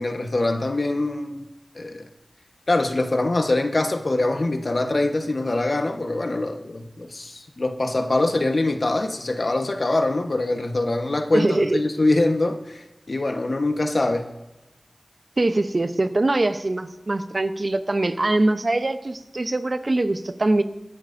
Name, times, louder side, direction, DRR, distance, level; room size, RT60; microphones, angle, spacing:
voice 1, 0.0-1.4 1.7-2.1 2.7-14.3, left 2 dB, 60° left, 5 dB, 1.3 m, -23 dB
voice 2, 11.3-11.8 15.4-20.6, right 2 dB, 50° right, 9 dB, 0.8 m, -22 dB
26.0 x 10.5 x 2.7 m, 1.0 s
wide cardioid pair, 50°, 0 cm